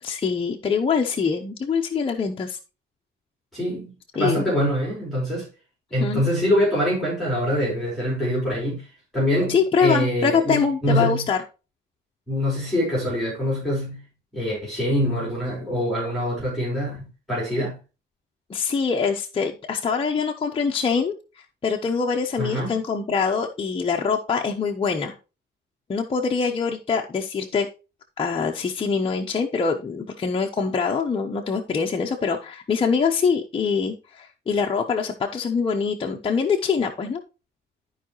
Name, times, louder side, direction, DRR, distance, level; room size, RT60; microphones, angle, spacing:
voice 1, 0.0-2.6 4.2-4.5 6.0-6.2 9.5-11.4 18.5-25.2 25.9-27.7 28.2-37.2, left 5 dB, 30° left, 0.9 m, -24 dB
voice 2, 3.5-5.5 5.9-8.9 9.1-11.3 12.3-14.0 14.3-17.8 22.4-22.8, equal, ahead, 4.6 m, -24 dB
13.0 x 4.8 x 3.1 m
cardioid pair, 135°, 19 cm